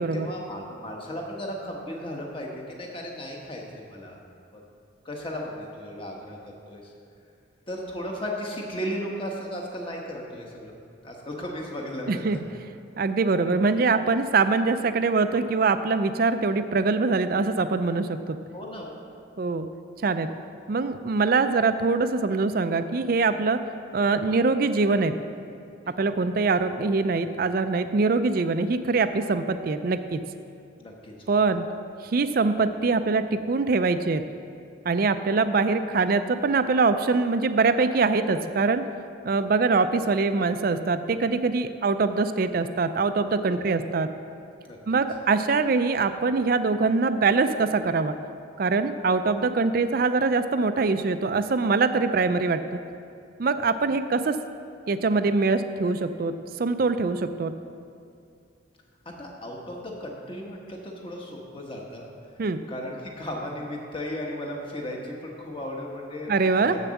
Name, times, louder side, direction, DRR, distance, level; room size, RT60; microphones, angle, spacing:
voice 1, 0.0-4.2 4.5-4.6 5.0-6.9 7.7-10.7 11.0-12.4 18.5-19.0 25.8-26.0 30.8-31.3 43.4-43.7 44.6-44.8 59.2-62.1 62.7-66.3 66.6-66.8, equal, 25° left, -1 dB, 1.2 m, -35 dB
voice 2, 12.1-12.4 13.0-18.4 19.4-19.7 20.0-20.3 20.7-23.6 23.9-25.2 26.0-30.2 31.3-31.7 32.0-34.2 34.8-38.9 39.2-44.1 44.9-48.2 48.6-52.6 53.4-54.4 54.9-57.5 62.4-62.6 66.3-66.8, right 4 dB, 50° right, 11 dB, 0.4 m, -23 dB
7.4 x 6.9 x 7.0 m, 2.4 s
head